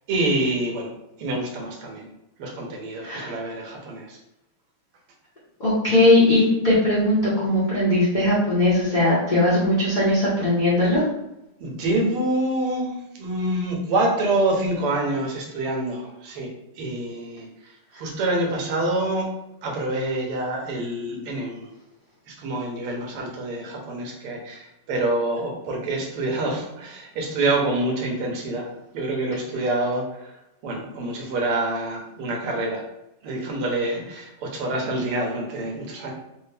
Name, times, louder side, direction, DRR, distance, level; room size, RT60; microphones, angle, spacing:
voice 1, 0.1-0.9 1.2-2.1 2.4-4.2 11.6-16.5 16.8-17.5 17.9-19.3 19.6-21.7 22.3-28.7 28.9-30.3 30.6-32.9 33.2-36.1, right 2 dB, 80° right, 0 dB, 1.9 m, -26 dB
voice 2, 3.0-3.3 5.6-11.0, left 1 dB, 35° left, -9 dB, 0.8 m, -19 dB
4.5 x 2.5 x 3.3 m, 0.91 s
omnidirectional pair, 2.4 m